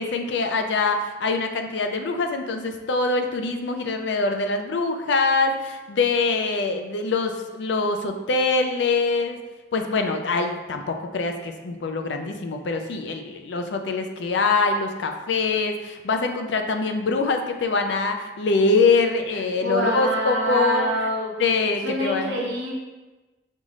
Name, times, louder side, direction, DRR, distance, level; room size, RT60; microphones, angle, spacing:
voice 1, 0.0-9.4 9.7-20.9 21.4-22.5, left 3 dB, 65° left, 5 dB, 0.4 m, -24 dB
voice 2, 19.6-21.3 21.8-22.7, right 1 dB, 70° right, -2 dB, 0.9 m, -25 dB
5.3 x 2.5 x 3.1 m, 1.2 s
head